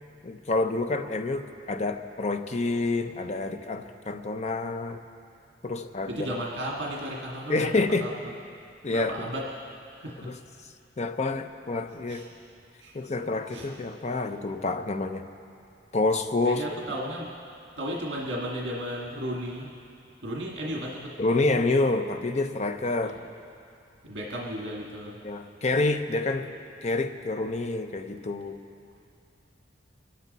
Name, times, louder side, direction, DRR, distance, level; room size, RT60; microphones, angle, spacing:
voice 1, 0.2-5.0 5.6-6.3 7.5-8.1 8.8-9.1 10.2-10.4 11.0-12.2 12.9-15.3 15.9-16.6 21.2-23.2 25.2-26.5 26.8-28.6, left 2 dB, 40° left, 7 dB, 0.7 m, -28 dB
voice 2, 6.1-8.1 8.9-9.5 10.0-10.3 12.1-12.3 12.8-12.9 13.5-13.7 16.4-17.3 17.8-19.7 20.2-21.1 23.0-23.2 24.0-25.2, equal, 75° right, -3 dB, 1.7 m, -34 dB
23.5 x 12.0 x 4.1 m, 2.6 s
head